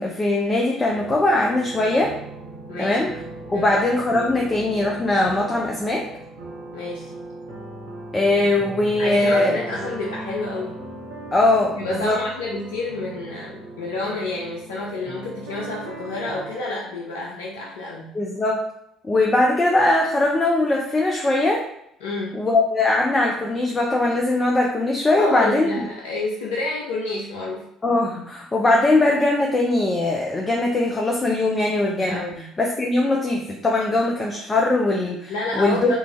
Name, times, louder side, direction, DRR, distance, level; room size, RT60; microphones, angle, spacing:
voice 1, 0.0-2.1 2.8-3.1 3.5-6.1 8.1-9.6 11.3-12.2 18.1-18.6 19.0-21.6 22.3-25.7 27.8-32.2 32.6-36.0, left 2 dB, 25° left, 0 dB, 0.6 m, -20 dB
sound 1, 0.9-16.6, right 2 dB, 80° right, 0.8 m, -38 dB
voice 2, 6.7-7.1 9.0-10.8 11.8-18.1 22.0-22.3 25.2-27.7 32.1-32.4 35.3-36.0, left 2 dB, 80° left, -3 dB, 0.5 m, -29 dB
3.2 x 2.6 x 3.4 m, 0.76 s
hypercardioid pair, 55°, 0 cm